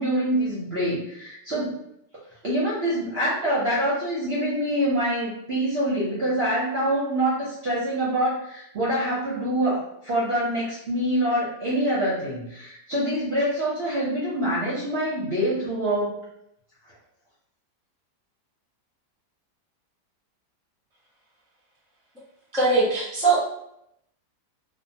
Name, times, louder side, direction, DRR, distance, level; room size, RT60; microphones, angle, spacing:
voice 1, 0.0-1.8 2.4-16.2, right 1 dB, 55° right, -7 dB, 0.7 m, -25 dB
voice 2, 22.5-23.4, right 3 dB, 5° left, -7 dB, 0.4 m, -21 dB
2.7 x 2.1 x 2.7 m, 0.78 s
omnidirectional pair, 1.8 m